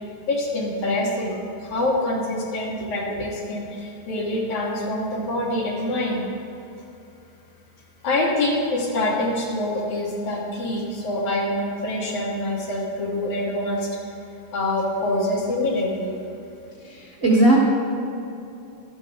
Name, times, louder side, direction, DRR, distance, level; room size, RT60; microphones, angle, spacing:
voice 1, 0.3-6.2 8.0-14.0 14.5-16.2, left 1 dB, 65° left, -3 dB, 3.4 m, -25 dB
voice 2, 16.8-17.6, right 1 dB, 40° right, -6 dB, 1.1 m, -18 dB
14.0 x 12.5 x 3.8 m, 2.8 s
omnidirectional pair, 3.8 m